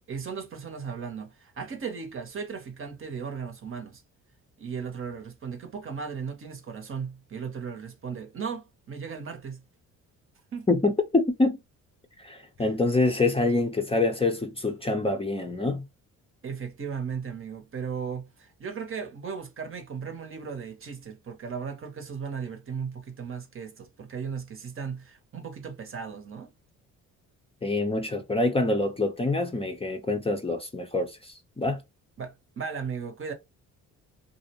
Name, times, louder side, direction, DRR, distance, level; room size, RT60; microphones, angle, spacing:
voice 1, 0.1-4.0 4.6-9.6 10.5-10.7 12.6-12.7 16.4-26.5 32.2-33.3, right 6 dB, 40° right, 0.8 m, -36 dB
voice 2, 10.7-11.6 12.2-15.9 27.6-31.8, left 2 dB, 15° left, 0.6 m, -26 dB
2.6 x 2.1 x 2.8 m
cardioid pair, 80°, 33 cm